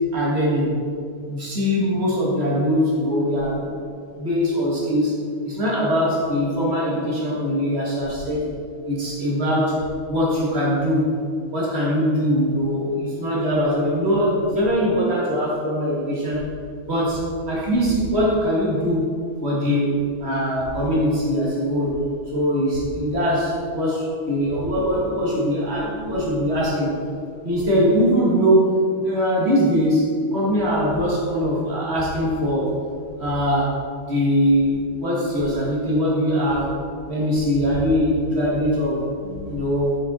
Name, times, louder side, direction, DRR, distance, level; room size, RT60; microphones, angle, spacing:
voice 1, 0.1-0.7 1.3-3.7 4.2-5.2 5.4-8.5 8.8-9.8 10.1-11.1 11.5-16.4 16.8-17.2 17.5-19.0 19.4-21.9 22.3-26.9 27.4-28.7 29.0-32.7 33.2-33.7 34.1-36.7 37.1-40.0, equal, 30° right, -6 dB, 1.6 m, -21 dB
6.2 x 5.8 x 4.1 m, 2.4 s
omnidirectional pair, 2.4 m